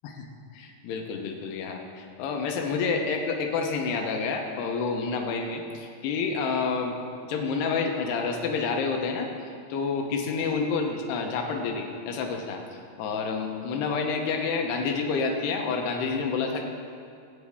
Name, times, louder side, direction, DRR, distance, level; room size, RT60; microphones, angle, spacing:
voice 1, 0.5-7.0 7.3-9.3 9.7-12.6 13.0-16.6, left 5 dB, 90° left, 3 dB, 2.8 m, -29 dB
12.0 x 8.2 x 3.5 m, 2.5 s
omnidirectional pair, 4.6 m